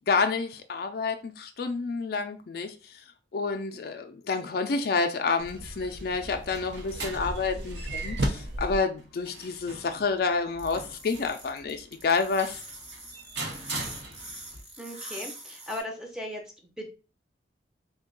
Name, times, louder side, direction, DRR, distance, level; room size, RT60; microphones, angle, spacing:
voice 1, 0.0-3.0 3.3-12.6, left 4 dB, 55° left, 0.3 m, -29 dB
sound 1, 5.4-8.8, equal, 60° right, 0.7 m, -34 dB
sound 2, 6.2-14.6, right 3 dB, 80° right, 1.0 m, -42 dB
sound 3, 10.6-15.8, right 1 dB, 30° right, 1.1 m, -43 dB
voice 2, 14.8-16.9, left 1 dB, 5° right, 0.6 m, -38 dB
3.6 x 2.2 x 3.7 m
head